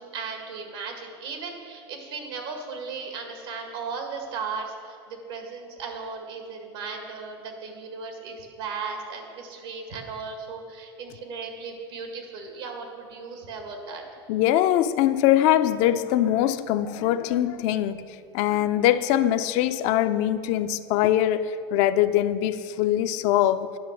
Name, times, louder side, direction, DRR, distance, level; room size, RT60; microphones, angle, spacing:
voice 1, 0.0-14.0, right 5 dB, 75° right, 1.9 m, -36 dB
voice 2, 14.3-23.7, left 12 dB, 60° left, 0.5 m, -22 dB
10.5 x 5.9 x 6.2 m
supercardioid pair, 105°, 13 cm